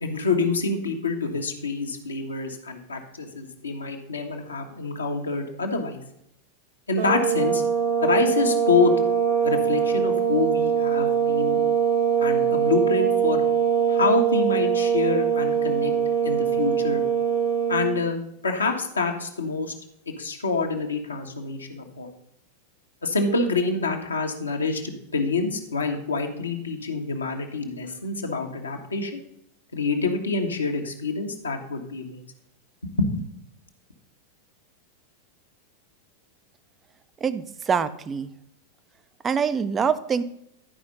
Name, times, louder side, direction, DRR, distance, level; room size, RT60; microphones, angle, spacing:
voice 1, 0.0-6.0 6.9-7.6 8.0-8.9 9.4-11.6 12.2-13.4 13.9-15.9 16.2-17.0 17.7-18.2 18.4-19.7 20.2-22.1 23.0-29.2 29.7-32.3 32.8-33.2, left 4 dB, 75° left, 3 dB, 1.3 m, -26 dB
sound 1, 7.0-18.0, right 8 dB, 50° right, 1.3 m, -22 dB
voice 2, 37.2-38.3 39.2-40.2, right 6 dB, 20° right, 13 dB, 0.6 m, -25 dB
11.5 x 5.1 x 5.2 m, 0.77 s
figure-of-eight pair, 90°, 0 cm